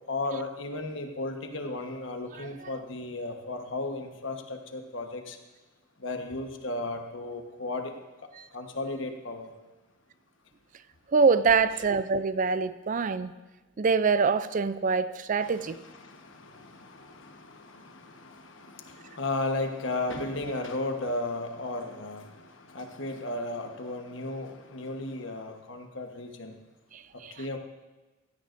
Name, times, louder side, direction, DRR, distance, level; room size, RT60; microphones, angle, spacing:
voice 1, 0.0-5.4 6.0-7.9 8.5-9.5 15.4-26.5 27.4-27.6, left 2 dB, 70° left, 4 dB, 1.2 m, -35 dB
voice 2, 11.1-13.3 13.8-15.8 27.2-27.3, right 5 dB, 40° right, 13 dB, 0.4 m, -24 dB
16.0 x 15.0 x 2.6 m, 1.2 s
head